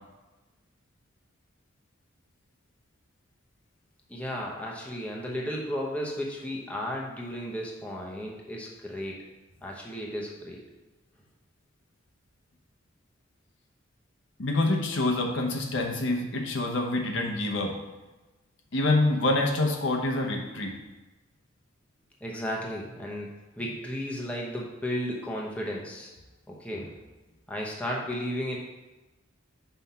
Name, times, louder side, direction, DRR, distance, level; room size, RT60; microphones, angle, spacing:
voice 1, 4.1-9.3 9.6-10.6 22.2-23.3 23.6-26.1 26.5-27.0 27.5-28.6, equal, 5° left, -3 dB, 0.9 m, -34 dB
voice 2, 14.4-17.7 18.7-20.8, left 2 dB, 65° left, 1 dB, 0.9 m, -26 dB
5.7 x 4.4 x 5.6 m, 1.1 s
head